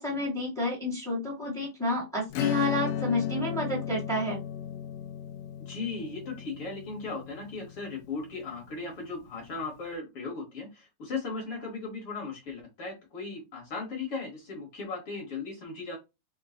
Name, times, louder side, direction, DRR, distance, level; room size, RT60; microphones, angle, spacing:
voice 1, 0.0-4.4, left 1 dB, 5° left, -3 dB, 0.4 m, -30 dB
Acoustic guitar / Strum, 2.3-8.6, left 9 dB, 85° left, 2.0 m, -34 dB
voice 2, 5.6-16.0, left 4 dB, 55° left, 0 dB, 1.9 m, -37 dB
4.8 x 2.3 x 3.7 m, 0.24 s
omnidirectional pair, 3.6 m